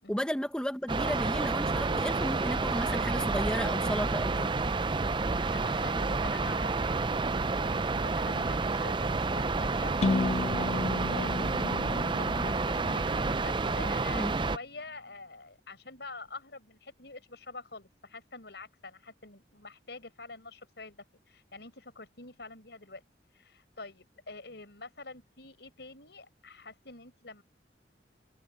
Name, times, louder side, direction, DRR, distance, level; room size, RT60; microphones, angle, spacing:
voice 1, 0.1-4.5 14.1-14.3, equal, 5° left, 1.2 m, -33 dB
sound 1, 0.9-14.6, right 3 dB, 25° right, 0.5 m, -29 dB
voice 2, 5.4-11.4 11.7-23.0 23.3-27.4, left 3 dB, 65° left, 7.0 m, -47 dB
sound 2, 10.0-13.9, left 3 dB, 35° left, 0.4 m, -33 dB
head